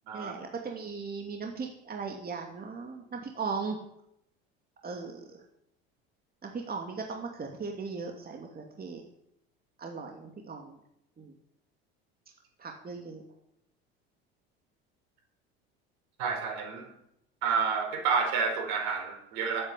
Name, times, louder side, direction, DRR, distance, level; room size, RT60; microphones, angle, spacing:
voice 1, 0.1-3.8 4.8-5.4 6.4-9.0 9.8-10.8 11.2-11.3 12.6-13.2, right 4 dB, 30° right, 2 dB, 2.6 m, -38 dB
voice 2, 16.2-16.9 17.4-19.7, right 5 dB, 70° right, 3 dB, 5.0 m, -29 dB
12.0 x 9.3 x 8.3 m, 0.77 s
hypercardioid pair, 80°, 31 cm